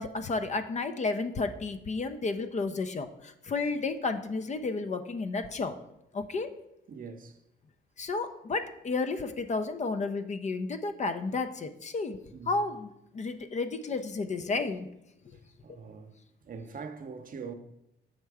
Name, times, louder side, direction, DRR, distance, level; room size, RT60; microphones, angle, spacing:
voice 1, 0.0-5.8 6.1-6.5 8.0-12.2 12.5-12.9 13.1-14.9, left 3 dB, 35° left, 0.5 m, -32 dB
voice 2, 6.9-7.4 12.3-12.6 15.3-17.5, right 5 dB, 45° right, 0.8 m, -43 dB
6.5 x 4.5 x 4.7 m
cardioid pair, 90°, 20 cm